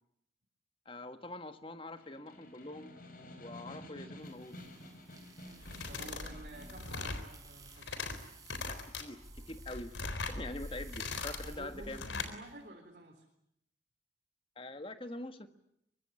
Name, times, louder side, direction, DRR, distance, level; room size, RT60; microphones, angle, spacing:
voice 1, 0.9-2.9 3.4-4.6 8.7-9.9 10.3-12.0 14.6-15.5, left 2 dB, 30° left, 9 dB, 1.7 m, -44 dB
Snare drum, 2.0-6.9, left 1 dB, 50° left, 4.5 m, -51 dB
sound 1, 4.3-12.2, equal, 20° right, 5.3 m, -50 dB
sound 2, 5.6-6.3 6.6-7.3 7.7-8.2 8.5-9.0 9.5-10.4 10.8-11.5 11.9-12.3, left 4 dB, 85° left, 3.9 m, -40 dB
voice 2, 5.9-8.0 11.4-13.3, right 1 dB, 50° right, 0 dB, 4.1 m, -51 dB
24.5 x 24.0 x 9.8 m, 0.77 s
head